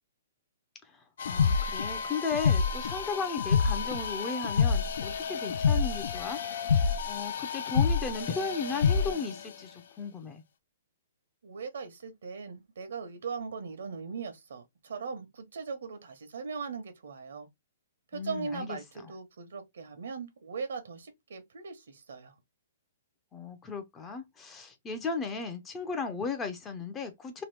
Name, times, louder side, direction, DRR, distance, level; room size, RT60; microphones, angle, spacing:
sound 1, 1.2-9.4, left 6 dB, 65° left, 0.4 m, -28 dB
voice 1, 1.2-6.4 7.1-10.4 18.1-18.8 23.3-27.4, left 4 dB, 15° left, 0.5 m, -35 dB
voice 2, 11.4-17.5 18.1-22.3, right 5 dB, 80° right, 1.0 m, -39 dB
2.9 x 2.3 x 3.3 m
hypercardioid pair, 165°, 0 cm